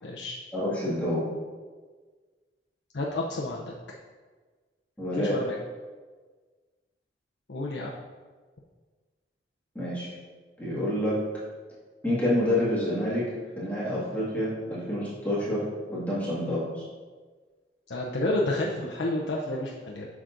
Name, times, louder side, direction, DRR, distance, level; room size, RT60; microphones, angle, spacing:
voice 1, 0.0-0.4 2.9-3.7 5.1-5.6 7.5-7.9 17.9-20.1, left 2 dB, 70° left, -3 dB, 0.6 m, -30 dB
voice 2, 0.5-1.3 5.0-5.3 9.8-10.1 10.6-11.2 12.0-13.3 13.6-16.8, left 1 dB, 10° left, -9 dB, 1.9 m, -28 dB
7.9 x 6.0 x 2.6 m, 1.4 s
head